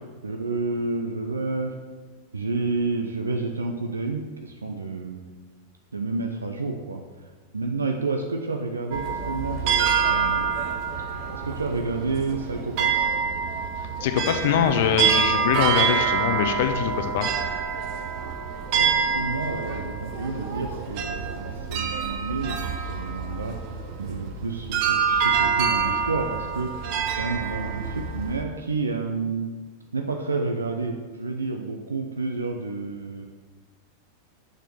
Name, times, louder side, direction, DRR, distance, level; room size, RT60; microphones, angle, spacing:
voice 1, 0.2-1.7 2.3-5.2 5.9-10.5 11.3-13.2 14.4-14.9 18.7-23.6 24.0-29.5 29.9-33.3, right 3 dB, 75° right, 3 dB, 0.7 m, -30 dB
sound 1, 8.9-28.4, right 6 dB, 45° right, 1.2 m, -26 dB
voice 2, 14.0-17.3, left 9 dB, 55° left, 7 dB, 0.7 m, -23 dB
6.6 x 6.3 x 6.9 m, 1.4 s
figure-of-eight pair, 90°, 0 cm